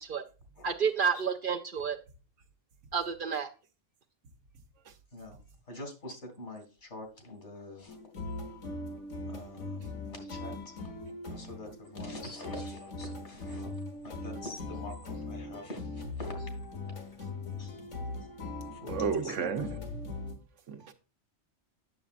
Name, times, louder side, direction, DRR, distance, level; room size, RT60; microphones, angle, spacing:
voice 1, 0.6-2.0 2.9-3.5, right 6 dB, 55° right, 0.7 m, -30 dB
voice 2, 5.7-8.0 9.3-10.6 11.3-13.7 14.0-16.5 17.6-17.7 18.7-19.4, left 1 dB, 70° left, 2.4 m, -45 dB
sound 1, 7.9-20.3, left 2 dB, 85° left, 1.8 m, -40 dB
voice 3, 18.9-19.7 20.7-20.9, right 6 dB, 85° right, 1.2 m, -32 dB
8.8 x 6.9 x 2.4 m
omnidirectional pair, 1.2 m